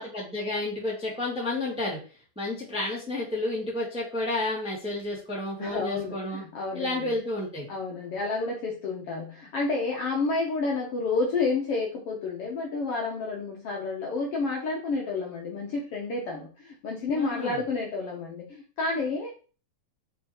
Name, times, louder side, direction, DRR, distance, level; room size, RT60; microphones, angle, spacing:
voice 1, 0.0-2.0 2.3-6.4 6.7-7.7 17.1-17.6, left 2 dB, ahead, -4 dB, 1.5 m, -31 dB
voice 2, 5.6-7.2 7.7-19.3, left 3 dB, 60° left, -1 dB, 1.7 m, -30 dB
5.5 x 4.4 x 4.4 m, 0.36 s
omnidirectional pair, 3.6 m